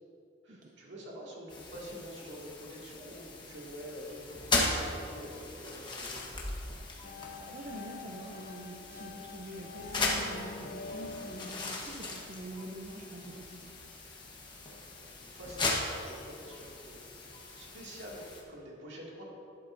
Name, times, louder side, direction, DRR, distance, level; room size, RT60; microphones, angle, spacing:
voice 1, 0.4-6.3 14.6-17.0 17.6-19.2, equal, 65° right, -4 dB, 2.3 m, -47 dB
sound 1, 1.5-18.4, left 2 dB, 25° left, 1.1 m, -38 dB
sound 2, 7.0-12.8, left 4 dB, 45° left, 0.5 m, -46 dB
voice 2, 7.2-13.7, right 1 dB, 40° right, -1 dB, 0.6 m, -45 dB
11.5 x 11.5 x 2.6 m, 2.7 s
head